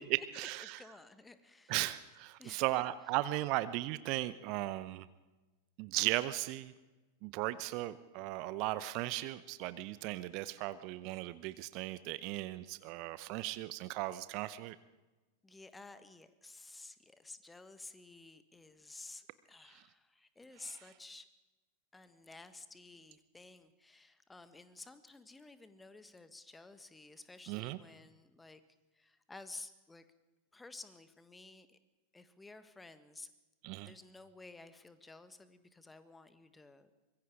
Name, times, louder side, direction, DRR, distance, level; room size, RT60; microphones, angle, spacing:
voice 1, 0.1-0.8 1.7-5.1 5.8-6.7 7.2-14.8 19.7-19.8 20.6-20.8 27.5-27.8 33.6-33.9, right 17 dB, 45° right, 16 dB, 0.7 m, -37 dB
voice 2, 0.6-1.7 2.4-2.6 15.4-21.3 21.9-28.6 29.0-30.0 30.5-31.8 32.1-33.3 33.8-36.9, left 3 dB, 10° left, 11 dB, 1.5 m, -53 dB
24.5 x 22.0 x 5.0 m, 1.1 s
figure-of-eight pair, 90°, 0 cm